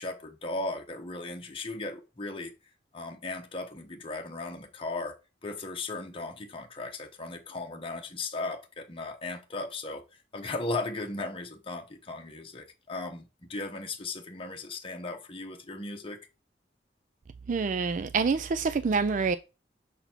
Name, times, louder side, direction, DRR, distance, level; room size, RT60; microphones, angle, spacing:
voice 1, 0.0-2.5 2.9-5.1 5.4-16.2, left 2 dB, 30° left, 1.0 m, -37 dB
voice 2, 17.5-19.4, right 5 dB, 45° right, 0.4 m, -26 dB
6.7 x 4.0 x 4.4 m
head